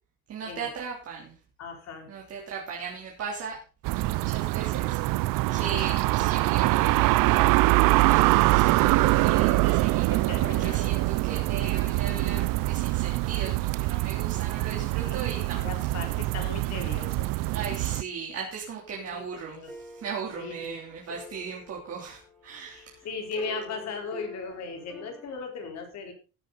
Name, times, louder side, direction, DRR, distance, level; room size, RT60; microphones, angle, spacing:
voice 1, 0.3-1.4 2.1-3.6 3.9-7.4 7.7-16.0 17.5-23.1, right 6 dB, 45° right, -1 dB, 3.4 m, -38 dB
voice 2, 1.6-2.1 10.1-11.0 15.0-15.2 15.6-17.3 19.0-19.2 19.5-19.7 20.4-20.8 22.7-26.1, left 4 dB, 55° left, 3 dB, 4.4 m, -37 dB
sound 1, 3.8-18.0, right 20 dB, 80° right, 0.6 m, -24 dB
sound 2, 19.7-25.4, left 1 dB, 5° left, 4.3 m, -46 dB
15.5 x 10.5 x 4.1 m, 0.34 s
cardioid pair, 155°, 32 cm